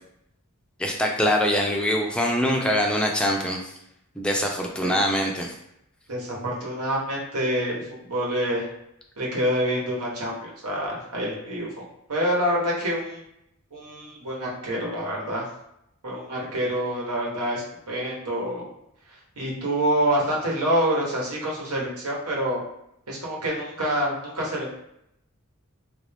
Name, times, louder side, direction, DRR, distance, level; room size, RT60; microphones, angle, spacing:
voice 1, 0.8-3.7 4.2-5.5, equal, 5° left, 0 dB, 0.4 m, -23 dB
voice 2, 6.1-8.7 9.2-13.2 13.7-15.4 16.0-18.6 19.4-22.6 23.1-24.8, equal, 85° right, -3 dB, 1.2 m, -27 dB
3.3 x 2.6 x 3.4 m, 0.79 s
head